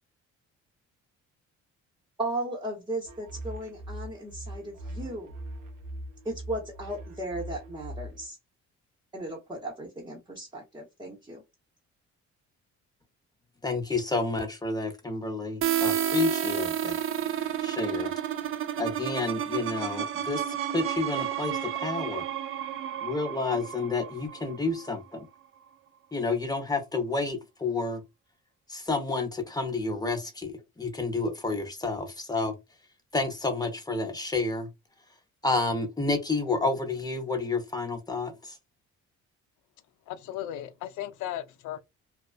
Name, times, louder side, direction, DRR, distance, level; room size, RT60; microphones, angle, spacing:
voice 1, 2.2-5.3 6.2-8.4 9.1-11.4, right 1 dB, 15° right, 0.9 m, -36 dB
sound 1, 3.0-8.3, right 1 dB, 85° right, 0.6 m, -41 dB
voice 2, 13.6-17.0 17.6-18.1 18.8-20.4 20.7-22.2 23.0-25.3 26.1-28.0 28.7-32.5 33.1-34.7 35.4-38.6, left 3 dB, 15° left, 0.7 m, -30 dB
sound 2, 15.6-25.2, right 10 dB, 45° right, 0.4 m, -31 dB
voice 3, 40.1-41.8, left 12 dB, 80° left, 0.5 m, -36 dB
2.4 x 2.2 x 2.4 m
cardioid pair, 90°, 30 cm